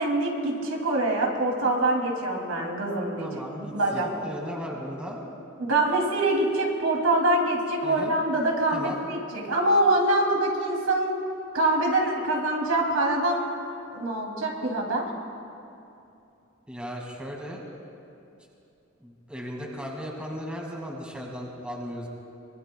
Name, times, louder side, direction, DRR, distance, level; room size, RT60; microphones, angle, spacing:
voice 1, 0.0-3.3 3.6-4.1 5.6-11.1 11.5-13.4 13.9-15.0, right 2 dB, 85° right, 0 dB, 2.8 m, -24 dB
voice 2, 3.2-5.2 7.8-8.1 8.7-9.0 16.7-17.6 19.0-22.1, equal, 5° right, -1 dB, 2.0 m, -36 dB
24.5 x 22.0 x 2.3 m, 2.7 s
head